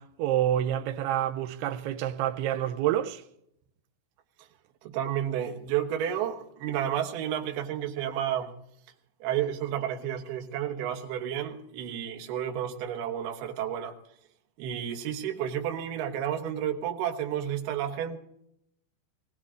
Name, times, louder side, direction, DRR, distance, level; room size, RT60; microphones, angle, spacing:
voice 1, 0.0-3.2, right 11 dB, 85° right, 2.3 m, -28 dB
voice 2, 4.8-8.5 9.2-14.0 14.6-18.2, right 10 dB, 65° right, 2.9 m, -31 dB
20.0 x 18.0 x 3.8 m
omnidirectional pair, 5.6 m